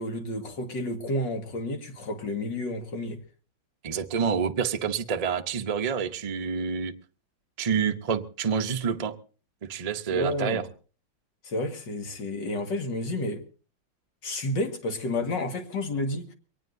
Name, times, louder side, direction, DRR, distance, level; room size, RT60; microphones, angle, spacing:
voice 1, 0.0-3.2 10.1-10.6 11.4-13.4 14.2-16.3, left 1 dB, 70° left, 2.4 m, -31 dB
voice 2, 3.8-6.9 7.6-9.1 9.6-10.6, right 6 dB, 55° right, 0.4 m, -28 dB
23.0 x 19.0 x 2.6 m
omnidirectional pair, 2.0 m